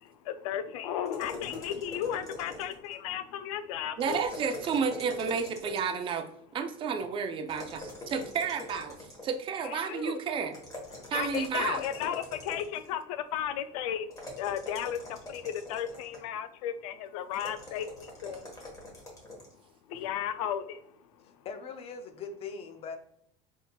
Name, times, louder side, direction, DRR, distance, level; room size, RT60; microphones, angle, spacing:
voice 1, 0.0-4.2 9.6-10.2 11.1-14.1 14.4-18.4 19.9-20.9, left 9 dB, 90° left, 0.4 m, -34 dB
sound 1, 1.1-2.9 4.0-6.0 7.5-9.5 10.5-12.9 14.1-16.3 17.3-19.5, left 1 dB, 20° left, 1.3 m, -44 dB
voice 2, 4.0-6.3 6.5-9.0 9.2-10.5 11.1-11.8, right 6 dB, 30° right, 0.4 m, -31 dB
voice 3, 21.2-23.0, left 5 dB, 35° left, 0.5 m, -41 dB
3.9 x 3.7 x 2.3 m
supercardioid pair, 140°, 17 cm